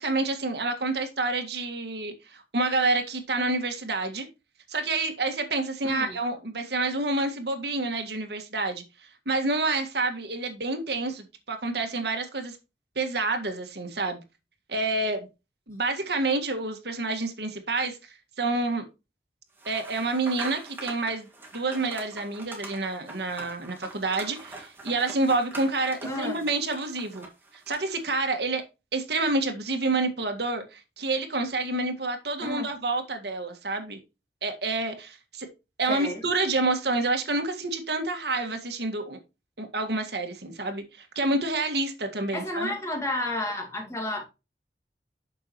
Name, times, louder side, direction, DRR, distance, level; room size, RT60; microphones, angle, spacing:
voice 1, 0.0-4.3 4.7-12.6 13.0-14.2 14.7-15.3 15.7-18.0 18.4-18.8 19.7-21.3 21.5-27.3 27.5-28.6 28.9-34.0 34.4-35.5 35.8-39.2 39.6-42.7, right 2 dB, 70° right, 1.8 m, -28 dB
voice 2, 5.8-6.2 26.0-26.4 32.4-32.7 35.9-36.2 42.3-44.2, left 1 dB, 15° left, 2.1 m, -31 dB
sound 1, 19.6-28.0, right 3 dB, 10° right, 2.1 m, -43 dB
9.4 x 6.8 x 3.1 m
head